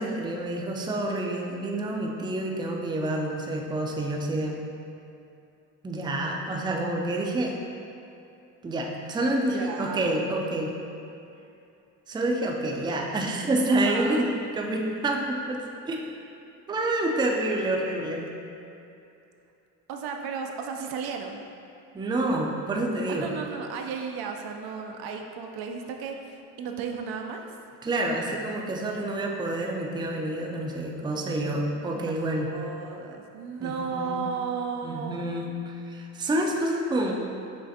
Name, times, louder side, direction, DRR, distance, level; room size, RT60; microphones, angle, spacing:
voice 1, 0.0-4.6 5.8-7.5 8.6-10.7 12.1-16.0 16.7-18.3 21.9-23.3 27.8-32.5 33.6-34.3 34.8-37.1, right 1 dB, 10° right, 0 dB, 0.4 m, -28 dB
voice 2, 9.4-10.2 13.7-14.3 19.9-21.4 23.1-27.4 31.9-32.2 32.5-35.2, right 5 dB, 70° right, 3 dB, 0.5 m, -34 dB
6.4 x 2.4 x 2.7 m, 2.7 s
supercardioid pair, 80°, 39 cm